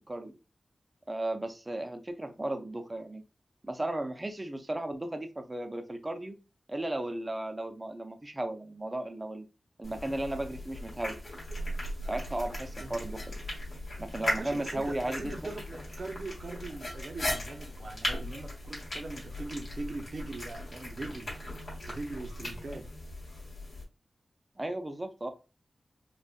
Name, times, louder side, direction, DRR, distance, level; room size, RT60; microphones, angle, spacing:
voice 1, 1.1-3.2 3.6-6.4 6.7-9.5 9.8-11.2 12.0-13.3 14.0-15.5 24.6-25.3, right 1 dB, 20° right, 0.6 m, -35 dB
sound 1, 9.8-23.8, left 1 dB, 50° left, 2.0 m, -38 dB
voice 2, 14.4-21.3 21.9-22.8, right 2 dB, 55° right, 0.8 m, -41 dB
5.1 x 2.4 x 2.4 m
wide cardioid pair, 115°, 0 cm